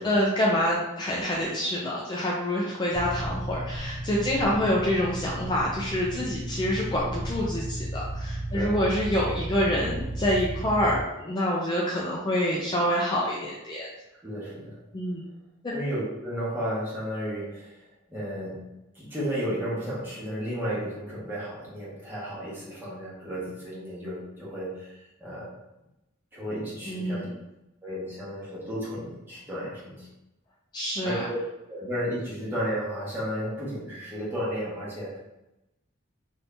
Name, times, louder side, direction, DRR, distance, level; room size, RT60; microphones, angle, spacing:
voice 1, 0.0-13.9 14.9-15.2 26.9-27.3 30.7-31.2, equal, 20° left, -4 dB, 0.4 m, -26 dB
sound 1, 2.9-11.0, right 1 dB, 35° right, 0.4 m, -34 dB
voice 2, 14.1-14.8 15.7-17.8 18.1-18.7 18.9-24.9 25.2-25.5 26.3-27.2 27.8-30.1 31.0-31.1 31.7-35.2, equal, 10° right, -8 dB, 1.2 m, -33 dB
2.7 x 2.6 x 3.4 m, 0.93 s
head